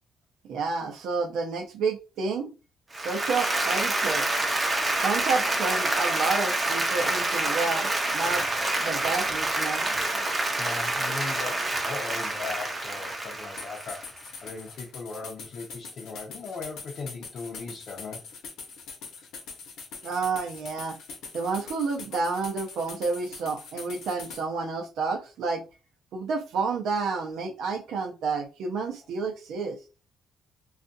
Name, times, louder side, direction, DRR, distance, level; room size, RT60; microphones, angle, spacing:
voice 1, 0.4-2.5 2.9-4.3 5.0-8.5 8.8-9.8 20.0-21.0 21.3-25.6 26.1-29.8, right 4 dB, 80° right, 0.6 m, -30 dB
Applause, 2.9-14.3, right 2 dB, 25° right, 0.7 m, -27 dB
voice 2, 10.5-18.3, left 4 dB, 55° left, 0.7 m, -38 dB
sound 1, 13.6-24.4, left 4 dB, 85° left, 0.9 m, -43 dB
2.4 x 2.4 x 2.6 m
cardioid pair, 90°, 0 cm